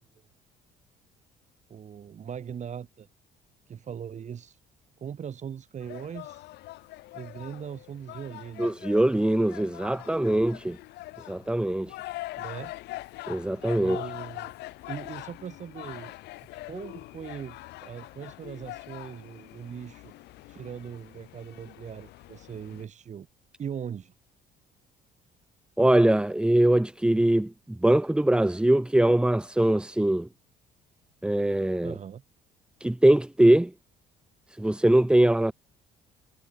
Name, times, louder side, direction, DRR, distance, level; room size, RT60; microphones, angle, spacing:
voice 1, 1.7-3.1 3.7-4.6 5.0-6.5 7.1-8.9 12.4-12.7 13.8-14.5 14.9-16.1 16.6-20.1 20.5-23.3 23.6-24.1 31.8-32.2, right 8 dB, 45° right, 4.3 m, -40 dB
sound 1, 5.8-22.9, left 18 dB, 85° left, 2.9 m, -43 dB
voice 2, 8.6-10.8 11.3-12.0 13.3-14.0 25.8-30.3 31.2-31.9 32.8-33.7 34.6-35.5, right 1 dB, 5° right, 1.6 m, -22 dB
cardioid pair, 110°, 17 cm